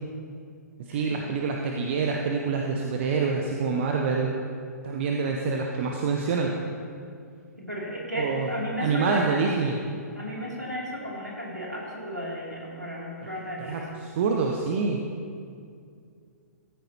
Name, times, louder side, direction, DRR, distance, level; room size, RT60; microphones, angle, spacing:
voice 1, 0.9-4.3 4.8-6.5 8.1-8.5 8.8-9.8 13.6-15.0, right 5 dB, 45° right, 1 dB, 0.7 m, -26 dB
voice 2, 7.6-9.5 10.1-13.9, equal, 90° right, -5 dB, 2.8 m, -34 dB
14.5 x 9.0 x 2.9 m, 2.3 s
figure-of-eight pair, 115°, 9 cm